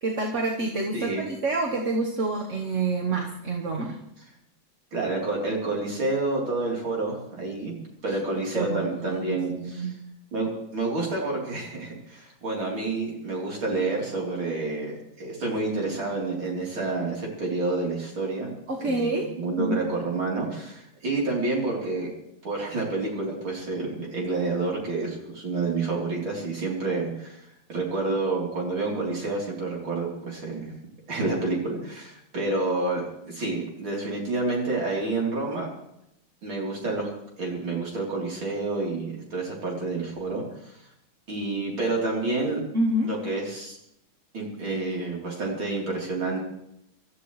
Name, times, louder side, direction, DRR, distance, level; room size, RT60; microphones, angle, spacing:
voice 1, 0.0-4.0 8.1-8.2 8.5-9.9 18.7-19.3 19.6-19.8 42.7-43.1, right 2 dB, 40° right, 0 dB, 1.4 m, -27 dB
voice 2, 0.9-1.3 4.9-7.7 8.0-9.9 10.3-18.5 18.8-22.1 22.4-27.4 27.7-30.7 31.1-35.7 36.4-37.1 37.4-40.4 41.3-42.6 43.0-43.8 44.3-46.4, right 3 dB, 85° right, -3 dB, 4.5 m, -29 dB
24.5 x 13.5 x 3.2 m, 0.81 s
omnidirectional pair, 2.2 m